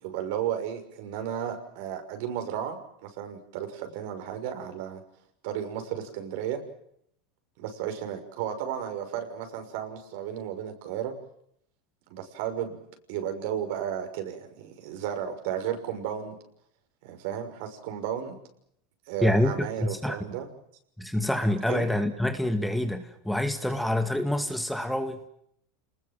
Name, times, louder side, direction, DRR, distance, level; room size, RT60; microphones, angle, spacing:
voice 1, 0.0-5.0 5.4-6.6 7.6-11.1 12.1-12.8 13.1-16.4 17.0-18.3 19.1-20.5 21.7-21.9, right 9 dB, 65° right, 7 dB, 6.2 m, -33 dB
voice 2, 19.2-20.2 21.0-25.3, left 1 dB, ahead, 8 dB, 2.1 m, -27 dB
29.0 x 20.5 x 7.6 m, 0.72 s
supercardioid pair, 130°, 0 cm